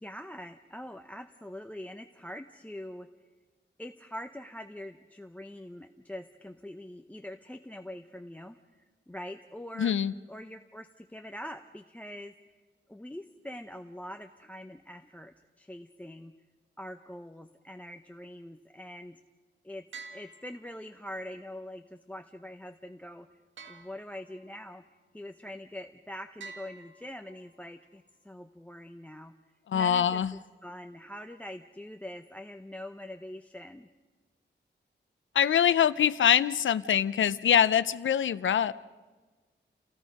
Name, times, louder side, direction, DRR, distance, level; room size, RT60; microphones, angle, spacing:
voice 1, 0.0-3.1 3.8-9.9 10.3-12.6 12.9-16.3 16.8-19.2 19.6-19.8 20.1-23.3 23.7-24.8 25.1-29.3 29.7-33.9, left 1 dB, 5° left, 8 dB, 0.6 m, -44 dB
voice 2, 9.8-10.1 29.7-30.3 35.3-38.7, left 9 dB, 85° left, 16 dB, 0.6 m, -24 dB
sound 1, 19.9-21.2 23.6-24.6 26.4-27.6, right 4 dB, 85° right, 1.9 m, -49 dB
29.5 x 17.5 x 5.3 m, 1.4 s
wide cardioid pair, 150°, 19 cm